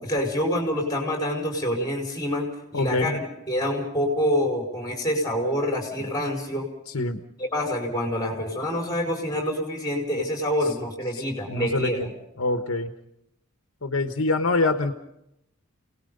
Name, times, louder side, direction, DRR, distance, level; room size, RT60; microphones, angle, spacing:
voice 1, 0.0-3.2 3.5-6.7 7.4-12.1, equal, 15° left, 1 dB, 4.8 m, -26 dB
voice 2, 2.7-3.2 6.9-7.2 11.1-12.1 12.4-12.9 13.8-14.9, left 2 dB, 70° left, 7 dB, 1.2 m, -25 dB
28.5 x 19.0 x 5.4 m, 0.83 s
head